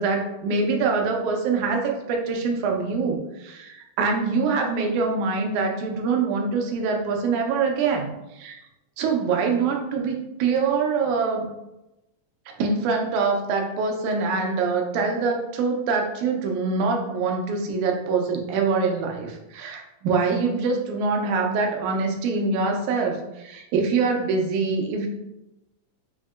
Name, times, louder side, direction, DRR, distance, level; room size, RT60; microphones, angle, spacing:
voice 1, 0.0-8.6 9.0-11.5 12.5-25.1, right 4 dB, 75° right, 2 dB, 1.9 m, -24 dB
5.4 x 2.6 x 2.4 m, 0.93 s
omnidirectional pair, 3.7 m